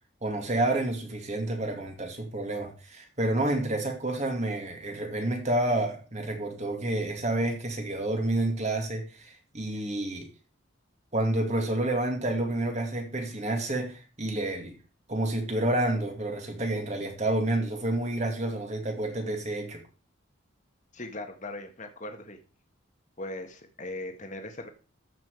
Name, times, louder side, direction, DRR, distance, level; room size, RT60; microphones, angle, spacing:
voice 1, 0.2-10.3 11.1-14.8 15.1-19.8, right 1 dB, 35° right, 2.4 m, -29 dB
voice 2, 20.9-22.4 23.2-24.7, left 2 dB, 35° left, 1.7 m, -39 dB
13.5 x 6.1 x 4.8 m
head